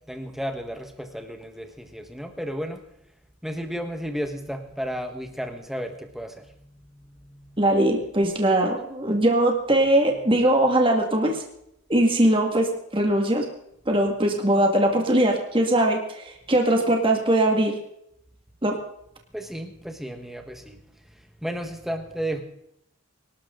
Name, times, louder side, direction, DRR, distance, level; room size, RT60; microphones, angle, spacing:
voice 1, 0.1-2.8 3.4-6.5 6.9-7.6 19.3-20.8 21.4-22.4, equal, ahead, 5 dB, 1.5 m, -33 dB
voice 2, 7.6-11.4 11.9-13.5 13.9-17.8 18.6-18.8, right 1 dB, 25° right, 2 dB, 2.0 m, -21 dB
24.5 x 12.5 x 3.9 m, 0.76 s
head